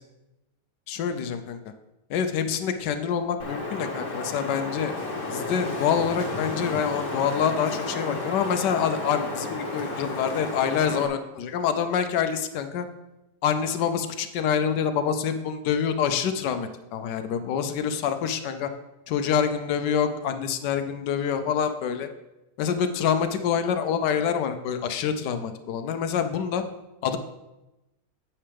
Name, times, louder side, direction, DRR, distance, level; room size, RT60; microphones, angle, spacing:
voice 1, 0.9-1.6 2.1-5.0 5.3-12.9 13.4-18.7 19.1-22.1 22.6-26.6 27.0-27.2, left 7 dB, 85° left, 9 dB, 1.2 m, -26 dB
Wind, 3.4-11.1, left 2 dB, 50° left, 1.5 m, -32 dB
8.7 x 8.6 x 3.4 m, 0.98 s
omnidirectional pair, 1.8 m